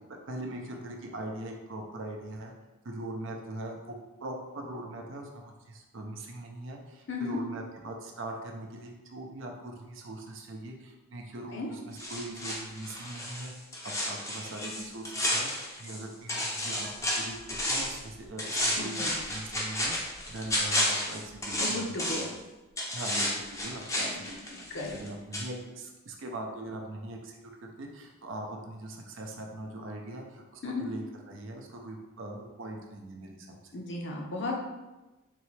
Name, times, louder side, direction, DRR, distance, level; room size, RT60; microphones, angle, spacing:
voice 1, 0.1-2.5 2.8-16.9 17.2-17.4 17.7-22.3 22.9-33.7, right 1 dB, 60° right, 2 dB, 0.6 m, -41 dB
voice 2, 7.1-7.4 11.5-11.7 18.8-19.1 21.6-22.3 24.0-25.0 30.6-30.8 33.7-34.6, left 3 dB, 55° left, 0 dB, 0.6 m, -35 dB
sound 1, 12.0-16.0 16.3-18.0 18.4-22.4 22.8-25.1 25.3-25.5, left 1 dB, 15° left, 0.5 m, -32 dB
3.8 x 3.1 x 3.2 m, 1.1 s
head